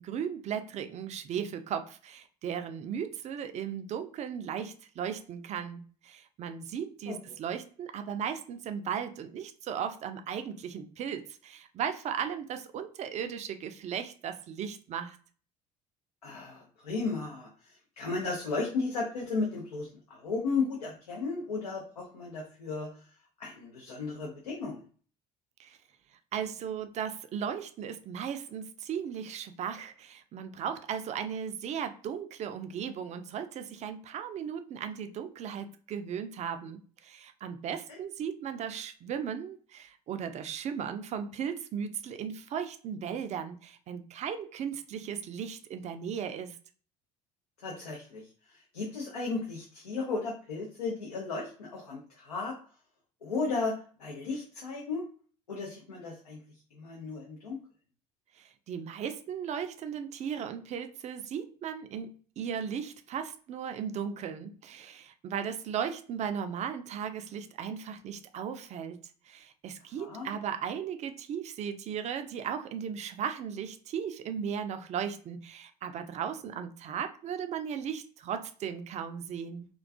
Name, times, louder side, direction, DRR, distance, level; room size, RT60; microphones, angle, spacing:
voice 1, 0.0-15.2 25.6-25.8 26.3-46.6 58.4-69.0 69.2-79.7, right 8 dB, 35° right, 9 dB, 0.4 m, -36 dB
voice 2, 16.2-22.9 23.4-24.8 37.9-38.0 47.6-52.5 53.2-55.1 55.5-56.4 56.7-57.6 70.0-70.3, left 4 dB, 90° left, -2 dB, 0.5 m, -35 dB
2.3 x 2.2 x 2.4 m, 0.42 s
hypercardioid pair, 65°, 19 cm